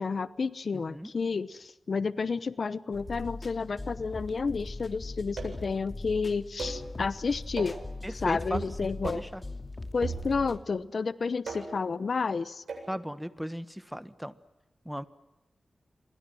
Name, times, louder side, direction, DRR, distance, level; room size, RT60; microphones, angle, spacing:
voice 1, 0.0-7.8 8.2-9.2 9.9-12.6, left 4 dB, 65° left, 16 dB, 0.8 m, -31 dB
voice 2, 0.7-1.1 8.0-9.4 12.9-14.4 14.8-15.0, equal, 5° right, 13 dB, 1.3 m, -37 dB
sound 1, 2.9-10.6, left 2 dB, 35° left, 2.8 m, -41 dB
sound 2, 5.4-5.7 6.6-6.9 7.6-7.9 8.5-8.8 9.0-9.3 10.0-10.6 11.5-11.9 12.7-12.9, right 4 dB, 85° right, 7.7 m, -38 dB
28.5 x 23.0 x 7.7 m, 1.0 s
wide cardioid pair, 75°, 0 cm